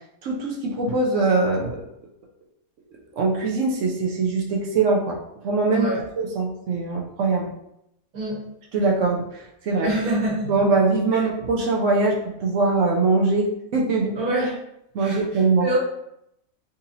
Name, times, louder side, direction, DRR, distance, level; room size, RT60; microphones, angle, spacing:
voice 1, 0.2-1.8 3.2-5.2 5.4-7.5 8.7-9.9 10.5-14.1 14.9-15.7, right 3 dB, 70° right, -1 dB, 0.9 m, -22 dB
voice 2, 9.8-10.5 11.1-11.2 14.2-14.5 15.0-15.2 15.6-15.8, right 2 dB, 90° right, -6 dB, 1.8 m, -25 dB
3.9 x 2.7 x 2.7 m, 0.79 s
omnidirectional pair, 1.5 m